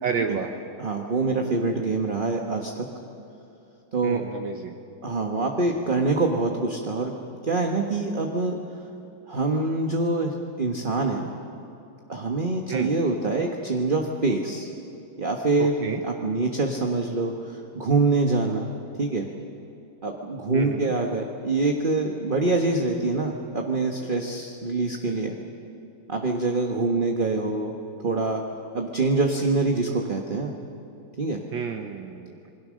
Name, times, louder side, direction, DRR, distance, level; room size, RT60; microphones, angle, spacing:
voice 1, 0.0-0.5 4.0-4.8 12.7-12.9 15.6-16.0 20.5-20.9 31.5-32.4, right 6 dB, 65° right, 4 dB, 1.7 m, -30 dB
voice 2, 0.8-2.9 3.9-4.2 5.0-7.1 7.4-8.6 9.3-11.3 12.1-14.7 15.2-18.7 19.0-19.3 20.0-25.3 26.1-27.7 28.0-28.4 28.7-30.5 31.2-31.4, right 3 dB, 30° right, 2 dB, 1.1 m, -25 dB
27.5 x 21.5 x 6.4 m, 2.8 s
omnidirectional pair, 2.4 m